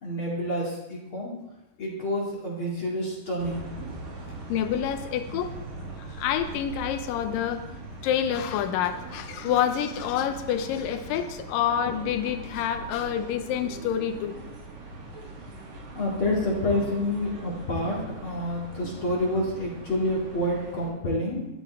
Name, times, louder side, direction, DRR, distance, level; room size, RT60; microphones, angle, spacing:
voice 1, 0.0-1.3 1.8-4.2 15.9-21.5, left 1 dB, 40° left, -4 dB, 2.7 m, -28 dB
sound 1, 3.4-20.9, right 2 dB, 65° right, 4.5 m, -41 dB
voice 2, 4.5-5.5 6.2-7.6 8.0-14.3, left 9 dB, 75° left, 8 dB, 2.5 m, -27 dB
13.5 x 10.5 x 4.6 m, 0.97 s
omnidirectional pair, 4.3 m